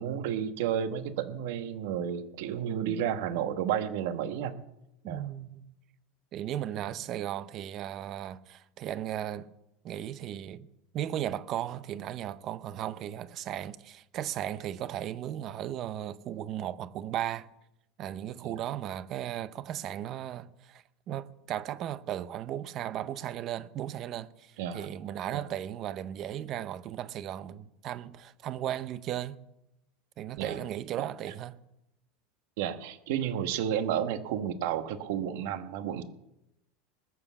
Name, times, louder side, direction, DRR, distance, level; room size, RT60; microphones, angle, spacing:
voice 1, 0.0-4.6 5.1-5.3 6.7-6.9 18.4-18.6 24.6-24.9 25.3-25.4 30.4-30.6 32.6-36.0, right 9 dB, 65° right, 1.3 m, -32 dB
voice 2, 2.7-3.0 5.0-5.7 6.3-9.5 9.8-10.7 10.9-17.5 18.0-29.4 30.2-31.6, right 11 dB, 35° right, 0.7 m, -36 dB
20.5 x 7.3 x 7.0 m
supercardioid pair, 160°, 0 cm